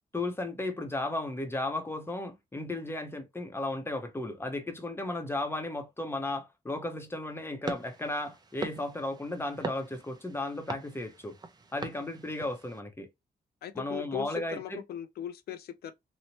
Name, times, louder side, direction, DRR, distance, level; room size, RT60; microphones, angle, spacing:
voice 1, 0.1-11.4 11.7-13.1 13.7-14.8, left 2 dB, 15° left, 0.7 m, -35 dB
sound 1, 7.6-12.8, right 3 dB, 25° right, 0.5 m, -42 dB
voice 2, 13.6-15.9, left 9 dB, 85° left, 0.4 m, -38 dB
2.9 x 2.1 x 2.8 m
cardioid pair, 100°, 16 cm